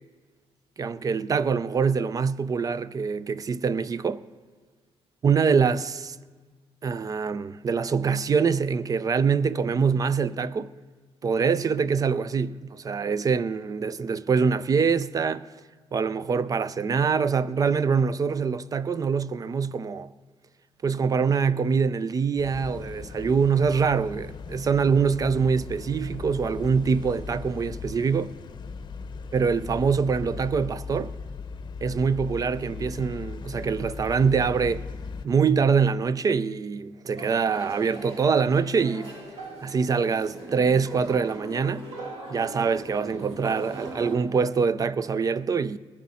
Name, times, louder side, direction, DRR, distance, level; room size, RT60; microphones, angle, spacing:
voice 1, 0.8-4.2 5.2-6.2 6.8-10.7 11.2-15.4 15.9-20.1 20.8-28.3 29.3-31.1 31.8-34.8 35.2-39.1 39.6-41.8 42.3-45.8, right 5 dB, 35° right, 0.4 m, -24 dB
sound 1, 22.4-35.3, left 5 dB, 45° left, 0.7 m, -38 dB
sound 2, 37.2-44.2, right 2 dB, 70° right, 2.8 m, -40 dB
19.5 x 10.5 x 4.2 m
cardioid pair, 115°, 11 cm